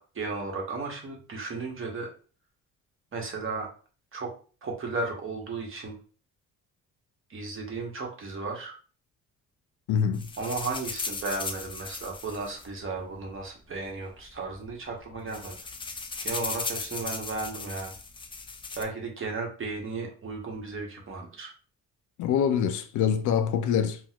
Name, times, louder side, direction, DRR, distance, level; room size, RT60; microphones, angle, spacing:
voice 1, 0.0-2.1 3.1-3.7 4.1-4.3 4.6-6.0 7.3-8.7 10.4-15.5 16.2-17.9 18.8-21.5, right 3 dB, 45° right, 1.1 m, -34 dB
voice 2, 9.9-10.3 22.2-24.0, left 8 dB, 75° left, 0.5 m, -25 dB
sound 1, 10.1-13.4 14.2-14.3 14.5-14.7 15.0-18.8, left 4 dB, 15° left, 0.3 m, -37 dB
4.0 x 2.2 x 2.3 m
cardioid pair, 90°, 30 cm